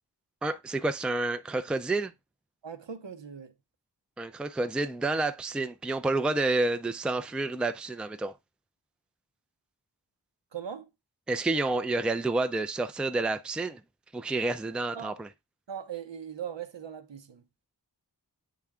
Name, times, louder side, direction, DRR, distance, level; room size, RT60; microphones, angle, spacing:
voice 1, 0.4-2.1 4.2-8.4 11.3-13.8 14.1-15.3, right 2 dB, ahead, 0.4 m, -29 dB
voice 2, 2.6-3.5 10.5-10.9 14.9-15.1 15.7-17.6, right 8 dB, 80° right, 0.8 m, -40 dB
8.5 x 3.4 x 3.5 m
wide cardioid pair, 45°, 43 cm